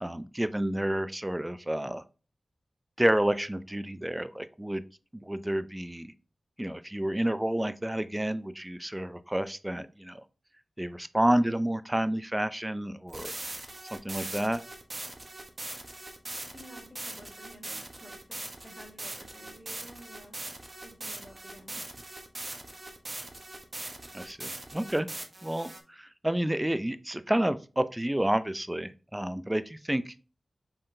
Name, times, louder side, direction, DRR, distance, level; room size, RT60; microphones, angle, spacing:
voice 1, 0.0-2.0 3.0-4.8 5.1-6.1 6.6-10.2 10.8-13.3 13.9-14.6 24.1-25.1 25.4-30.1, right 1 dB, 15° right, 12 dB, 0.5 m, -30 dB
sound 1, 13.1-25.8, right 2 dB, 45° right, 0.9 m, -41 dB
voice 2, 16.5-18.4 18.6-20.4 20.8-21.8, equal, 20° left, 2 dB, 1.7 m, -51 dB
5.6 x 3.6 x 2.7 m, 0.35 s
cardioid pair, 40°, 0 cm